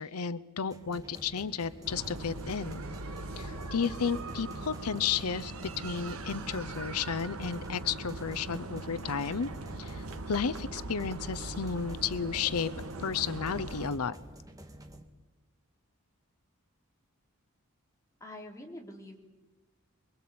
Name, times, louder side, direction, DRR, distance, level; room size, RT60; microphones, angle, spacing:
voice 1, 0.0-2.8 3.4-9.5 9.8-12.7 13.0-14.2, left 6 dB, 90° left, 15 dB, 0.7 m, -33 dB
sound 1, 0.7-15.0, right 1 dB, 15° right, 1.8 m, -49 dB
sound 2, 1.8-13.9, right 2 dB, 75° right, 1.6 m, -41 dB
voice 2, 18.2-19.2, left 1 dB, 15° left, 0 dB, 3.5 m, -45 dB
24.5 x 23.0 x 8.6 m, 1.2 s
head